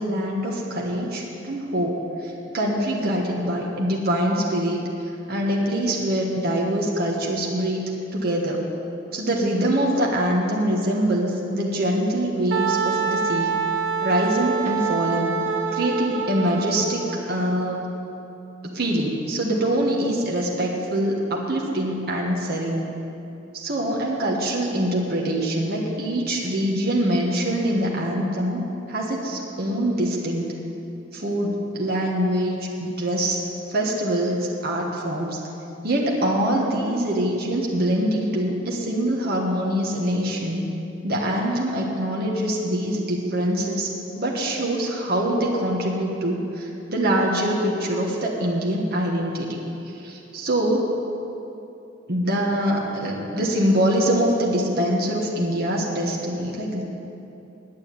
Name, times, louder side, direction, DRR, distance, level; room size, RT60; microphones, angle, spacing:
voice 1, 0.0-4.8 5.3-8.6 9.1-13.5 14.0-15.3 15.7-17.8 18.7-22.9 23.5-28.6 28.9-30.5 31.1-33.4 33.7-35.4 35.8-40.6 41.0-43.9 44.2-49.6 49.9-50.8 52.1-56.8, right 1 dB, 55° right, -2 dB, 1.5 m, -24 dB
Wind instrument woodwind instrument, 12.5-17.1, right 5 dB, 80° right, 0.8 m, -25 dB
9.8 x 8.9 x 8.8 m, 2.9 s
head